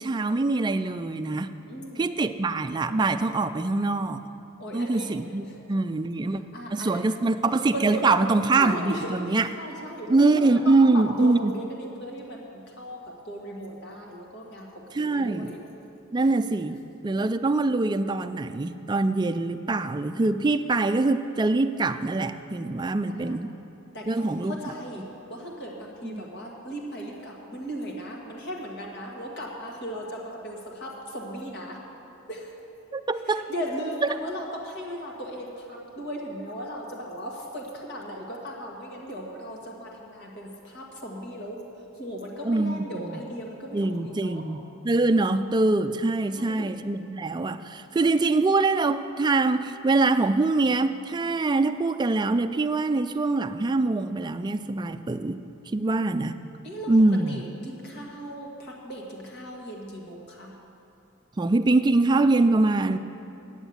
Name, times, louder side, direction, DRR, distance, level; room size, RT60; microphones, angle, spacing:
voice 1, 0.0-1.5 2.0-4.2 4.7-6.4 6.7-9.5 10.1-11.5 14.9-15.5 16.1-23.5 24.1-24.6 26.0-26.2 32.9-33.5 42.4-43.2 43.7-55.4 55.7-56.4 56.9-57.4 61.4-63.0, right 3 dB, 20° right, 10 dB, 0.3 m, -24 dB
voice 2, 1.7-2.1 4.6-5.1 5.5-5.6 6.3-7.2 7.7-8.1 8.5-14.7 15.0-15.6 23.1-23.5 23.9-31.8 32.3-32.5 33.3-44.4 46.3-46.7 56.6-56.9 57.3-60.6, equal, 55° left, -1 dB, 1.9 m, -37 dB
10.0 x 7.9 x 8.0 m, 2.8 s
head